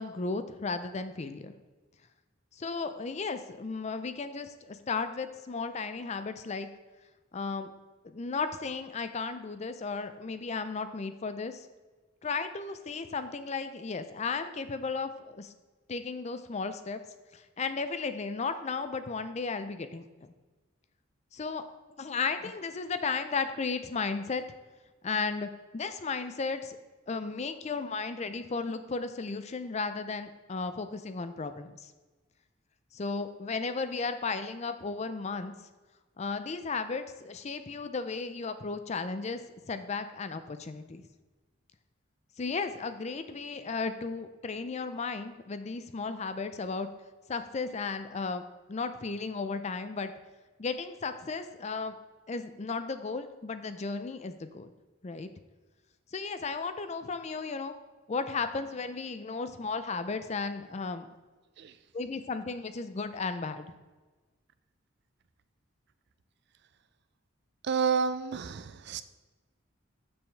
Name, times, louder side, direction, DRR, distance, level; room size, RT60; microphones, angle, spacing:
voice 1, 0.0-1.5 2.6-6.7 7.3-7.7 8.0-11.7 12.2-15.5 15.9-17.0 17.3-20.1 21.3-21.6 22.0-24.4 25.0-26.8 27.1-31.9 32.9-35.5 36.2-39.4 39.7-41.1 42.4-46.9 47.3-48.4 48.7-50.1 50.6-51.9 52.3-54.7 55.0-55.3 56.1-57.7 58.1-61.1 61.9-63.7, left 4 dB, 35° left, 10 dB, 0.4 m, -34 dB
voice 2, 67.6-69.0, right 6 dB, 55° right, 12 dB, 0.4 m, -30 dB
7.5 x 6.9 x 3.4 m, 1.3 s
head